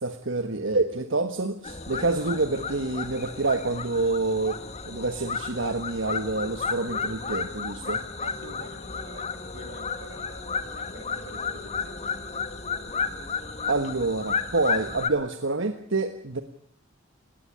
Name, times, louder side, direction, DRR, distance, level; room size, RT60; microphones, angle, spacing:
voice 1, 0.0-4.6 4.9-8.0 13.7-16.4, right 3 dB, 65° right, 8 dB, 1.3 m, -27 dB
Rural Ambience in Brunei, 1.6-15.1, left 5 dB, 35° left, 1.7 m, -33 dB
voice 2, 8.2-12.1, right 2 dB, 85° right, 8 dB, 3.2 m, -47 dB
19.0 x 19.0 x 8.9 m, 0.66 s
head